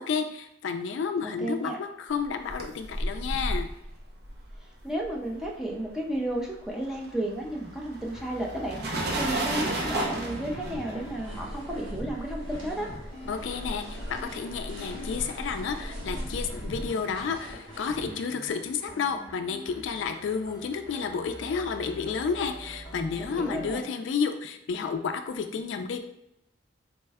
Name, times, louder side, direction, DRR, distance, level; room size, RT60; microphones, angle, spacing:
voice 1, 0.0-3.7 13.3-26.0, left 5 dB, 65° left, 7 dB, 0.3 m, -31 dB
voice 2, 1.2-1.8 4.8-12.9 23.2-23.8, right 1 dB, 5° right, -1 dB, 0.4 m, -33 dB
sound 1, 2.2-5.9 6.1-16.9, right 1 dB, 55° right, 0.6 m, -35 dB
sound 2, 8.0-23.8, equal, 20° left, 0.8 m, -47 dB
sound 3, 9.7-18.1, left 1 dB, 75° right, 1.0 m, -44 dB
4.1 x 2.1 x 3.4 m, 0.82 s
head